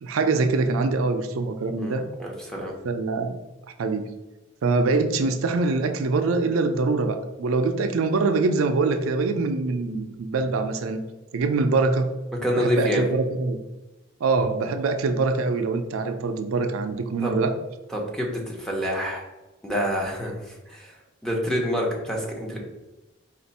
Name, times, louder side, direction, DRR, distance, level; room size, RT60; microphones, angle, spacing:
voice 1, 0.0-2.0 2.8-3.4 3.8-4.0 4.6-11.0 11.3-12.1 12.5-13.6 14.2-17.5, right 3 dB, 85° right, 7 dB, 0.4 m, -24 dB
voice 2, 1.8-2.7 12.4-13.0 17.2-17.4 17.9-19.2 19.6-20.9 21.2-22.6, equal, 5° left, -3 dB, 0.8 m, -27 dB
4.2 x 2.5 x 4.1 m, 1.1 s
head